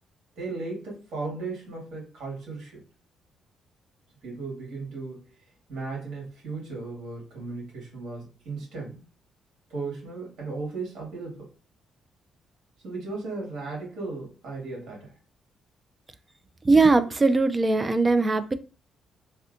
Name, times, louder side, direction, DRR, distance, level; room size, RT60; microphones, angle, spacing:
voice 1, 0.4-2.8 4.2-5.3 5.7-9.0 9.7-11.5 12.8-15.1, right 3 dB, 80° right, -3 dB, 1.8 m, -36 dB
voice 2, 16.6-18.5, right 3 dB, 25° right, 11 dB, 0.3 m, -20 dB
3.2 x 2.8 x 2.5 m, 0.33 s
cardioid pair, 90°, 0 cm